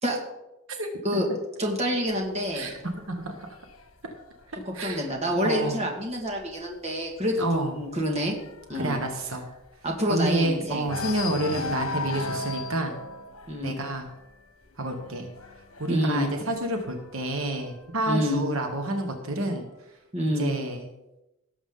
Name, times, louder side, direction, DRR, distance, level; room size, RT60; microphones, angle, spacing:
voice 1, 0.8-1.2 2.5-2.7 3.1-3.3 4.7-5.1 5.4-5.8 7.4-7.7 8.7-9.4 10.1-12.9 13.6-14.1 14.8-15.3 15.8-19.6 20.4-20.9, right 1 dB, 70° right, 4 dB, 1.4 m, -29 dB
voice 2, 1.6-2.7 4.7-8.3 8.7-9.0 9.8-10.9 11.4-11.6 13.5-13.8 15.9-16.3 18.1-18.4 20.1-20.5, equal, 30° right, 0 dB, 1.9 m, -27 dB
sound 1, 2.1-5.7 6.1-6.4 6.7-6.8 7.2-10.4 10.8-17.4 18.2-19.2, left 3 dB, 80° left, 1.4 m, -38 dB
17.5 x 7.2 x 3.8 m, 0.95 s
head